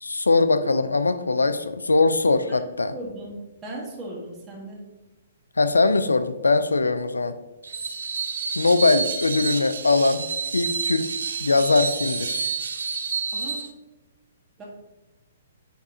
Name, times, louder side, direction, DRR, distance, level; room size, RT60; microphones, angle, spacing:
voice 1, 0.0-3.0 5.6-7.4 8.5-10.3 10.5-12.5, left 3 dB, 90° left, 11 dB, 0.4 m, -21 dB
voice 2, 2.5-3.4 3.6-4.8 13.3-13.6 14.6-14.7, right 1 dB, 20° right, -4 dB, 1.5 m, -37 dB
Screech, 7.6-13.7, right 5 dB, 70° right, 0.5 m, -29 dB
9.2 x 3.6 x 2.8 m, 1.1 s
hypercardioid pair, 130°, 0 cm